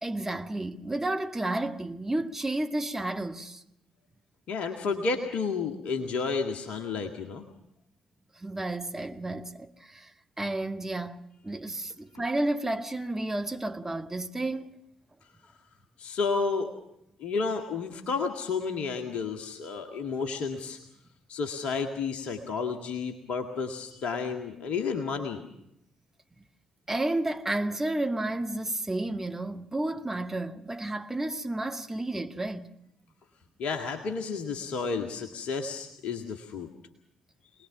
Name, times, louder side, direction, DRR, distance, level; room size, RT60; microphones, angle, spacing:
voice 1, 0.0-3.6 8.3-14.8 26.9-32.7, right 2 dB, 15° right, 1.8 m, -31 dB
voice 2, 4.5-7.4 12.1-12.2 16.0-16.7 17.2-20.8 21.3-25.5 33.6-36.7, left 4 dB, 60° left, 1.9 m, -31 dB
26.5 x 19.5 x 6.1 m
figure-of-eight pair, 40°, 2 cm